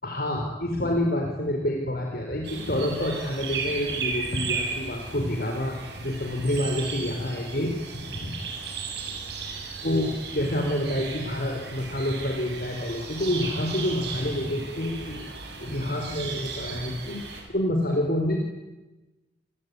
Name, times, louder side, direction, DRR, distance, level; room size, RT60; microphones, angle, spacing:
voice 1, 0.0-8.3 9.8-15.3 15.5-18.4, left 1 dB, 50° left, 2 dB, 4.2 m, -28 dB
sound 1, 2.4-17.4, right 5 dB, 60° right, 6.9 m, -36 dB
28.5 x 21.0 x 9.6 m, 1.1 s
head